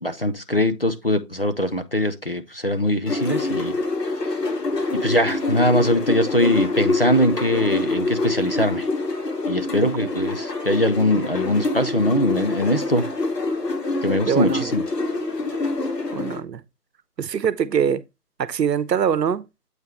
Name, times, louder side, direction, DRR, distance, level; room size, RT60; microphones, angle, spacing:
voice 1, 0.0-3.8 5.0-8.9 9.5-13.1 14.0-14.8, left 1 dB, 40° left, 0.4 m, -22 dB
sound 1, 3.1-16.4, left 2 dB, 75° left, 2.8 m, -26 dB
voice 2, 14.3-14.7 16.1-16.6 17.2-18.0 18.4-19.5, right 8 dB, 85° right, 0.9 m, -23 dB
8.0 x 3.6 x 4.4 m
hypercardioid pair, 160°, 49 cm